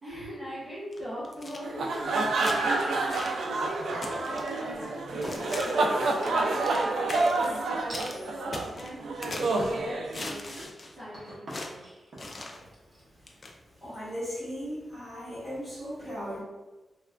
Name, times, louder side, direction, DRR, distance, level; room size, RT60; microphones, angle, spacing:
voice 1, 0.0-7.0 7.3-10.6 10.9-11.9, equal, 35° right, -14 dB, 1.1 m, -41 dB
sound 1, 0.9-1.6 2.3-2.6 3.1-3.4 4.0-4.5 5.2-5.9 6.3-6.8 7.1-7.6 7.9-8.2 8.5-9.6 10.1-11.0 11.5-11.7 12.2-12.6 13.3-13.5, left 2 dB, 35° left, 0.3 m, -40 dB
sound 2, 1.6-10.6, right 2 dB, 85° right, 0.3 m, -28 dB
sound 3, 3.9-4.5 5.0-5.7 6.1-6.7 7.9-8.1 8.8-9.2 9.6-9.9 10.4-14.1, right 1 dB, 60° right, 0.8 m, -46 dB
voice 2, 13.8-16.4, equal, 5° left, -13 dB, 1.0 m, -37 dB
3.1 x 2.2 x 2.3 m, 1.2 s
wide cardioid pair, 140°, 0 cm